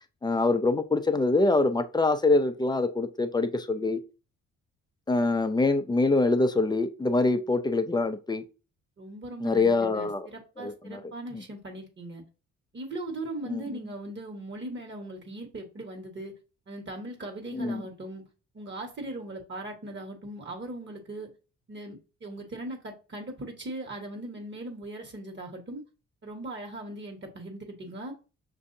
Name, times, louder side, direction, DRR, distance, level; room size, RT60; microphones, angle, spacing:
voice 1, 0.2-4.0 5.1-8.4 9.4-10.3 10.6-11.0 11.3-11.4 13.5-13.6 17.5-17.8, left 3 dB, 15° left, 0.4 m, -25 dB
voice 2, 9.0-12.2 12.7-16.3 16.7-18.2 18.5-21.3 21.7-25.8 26.2-28.1, right 1 dB, 40° right, 1.4 m, -39 dB
6.1 x 2.7 x 2.6 m
cardioid pair, 90°, 30 cm